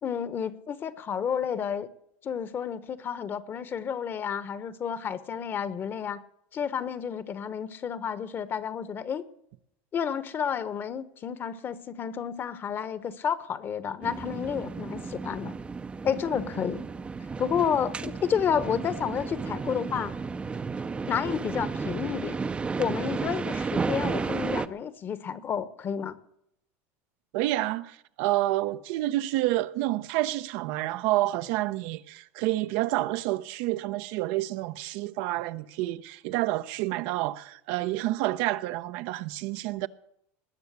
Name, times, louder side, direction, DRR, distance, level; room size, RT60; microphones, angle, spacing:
voice 1, 0.0-1.9 2.2-6.2 6.5-9.2 9.9-15.5 16.0-16.8 17.4-20.1 21.1-22.3 22.7-26.2, left 7 dB, 30° left, 1.1 m, -30 dB
sound 1, 14.0-24.7, right 4 dB, 15° right, 0.6 m, -33 dB
voice 2, 27.3-39.9, right 17 dB, 70° right, 0.7 m, -29 dB
20.0 x 6.9 x 8.2 m
supercardioid pair, 130°, 7 cm